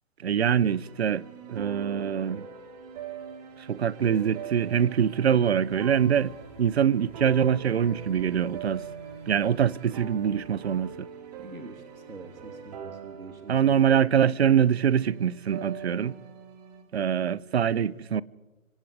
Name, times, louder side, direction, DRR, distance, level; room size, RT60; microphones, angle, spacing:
voice 1, 0.2-2.5 3.6-8.8 9.3-11.1 13.5-16.2 16.9-18.2, right 8 dB, 50° right, 0.9 m, -24 dB
sound 1, 0.7-16.8, right 6 dB, 30° right, 4.2 m, -43 dB
sound 2, 5.6-11.0, equal, 5° left, 5.4 m, -53 dB
voice 2, 11.4-14.0, right 3 dB, 85° right, 3.1 m, -45 dB
26.0 x 25.5 x 5.0 m
figure-of-eight pair, 145°, 41 cm